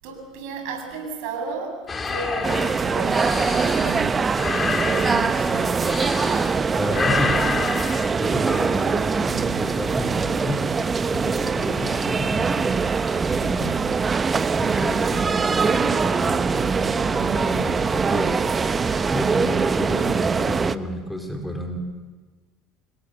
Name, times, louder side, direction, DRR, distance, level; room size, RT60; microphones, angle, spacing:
voice 1, 0.0-5.9, right 3 dB, 70° right, 4 dB, 7.2 m, -34 dB
sound 1, 1.9-6.6 6.9-8.1, left 4 dB, 25° left, 2.5 m, -28 dB
sound 2, 2.4-20.8, right 5 dB, 25° right, 1.0 m, -23 dB
voice 2, 6.7-7.4 8.2-10.7 11.0-12.7 13.2-13.8 14.5-18.3 19.1-21.8, equal, ahead, 2 dB, 4.7 m, -30 dB
28.0 x 21.5 x 7.0 m, 1.3 s
hypercardioid pair, 75°, 0 cm